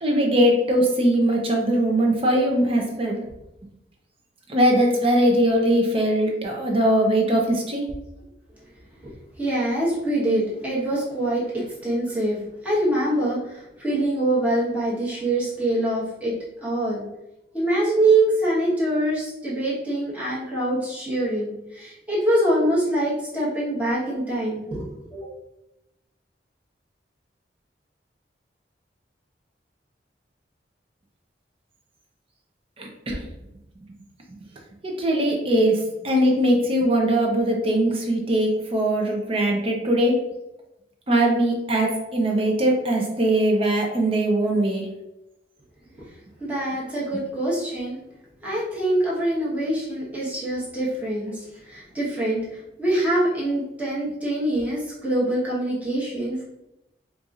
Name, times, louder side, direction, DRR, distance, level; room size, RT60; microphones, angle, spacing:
voice 1, 0.0-3.2 4.5-7.8 32.8-33.2 34.8-35.7 36.0-40.2 41.1-44.9, right 1 dB, 30° right, 1 dB, 0.7 m, -21 dB
voice 2, 9.4-16.3 16.6-17.0 17.5-25.3 46.4-48.0 48.4-56.4, right 1 dB, 10° right, -8 dB, 1.1 m, -24 dB
4.5 x 2.6 x 2.4 m, 0.91 s
head